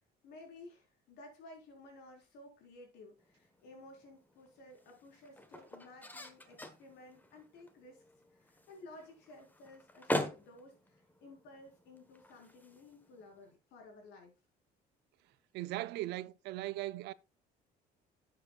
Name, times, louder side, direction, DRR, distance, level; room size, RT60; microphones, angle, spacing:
voice 1, 0.2-8.0 8.3-14.3, left 2 dB, 85° left, 4.4 m, -55 dB
sound 1, 3.2-13.5, left 1 dB, 10° left, 1.3 m, -44 dB
voice 2, 15.5-17.1, right 16 dB, 85° right, 0.5 m, -38 dB
11.5 x 7.5 x 2.4 m
cardioid pair, 110°, 17 cm